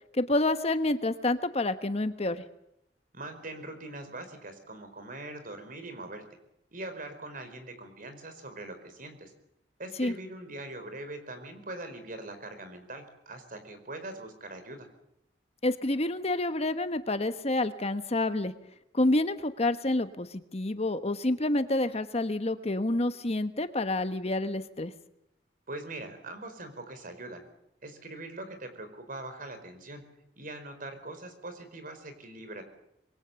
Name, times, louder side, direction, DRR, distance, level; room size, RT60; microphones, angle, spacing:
voice 1, 0.1-2.4 10.0-10.1 15.6-18.5 18.9-24.9, left 2 dB, 35° left, 10 dB, 1.2 m, -28 dB
voice 2, 3.1-6.2 6.7-9.3 9.8-14.9 25.7-27.4 27.8-30.0 30.4-32.6, right 2 dB, 50° right, 8 dB, 4.7 m, -42 dB
26.0 x 22.5 x 7.0 m, 0.81 s
head